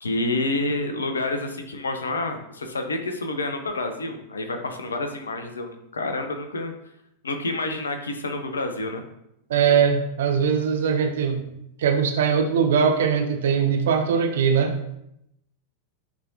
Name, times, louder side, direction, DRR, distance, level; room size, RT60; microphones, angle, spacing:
voice 1, 0.0-6.7 7.2-9.0, left 2 dB, 70° left, 6 dB, 0.8 m, -28 dB
voice 2, 9.5-11.4 11.8-15.0, right 6 dB, 60° right, 6 dB, 0.7 m, -21 dB
9.2 x 3.6 x 2.8 m, 0.79 s
figure-of-eight pair, 90°, 0 cm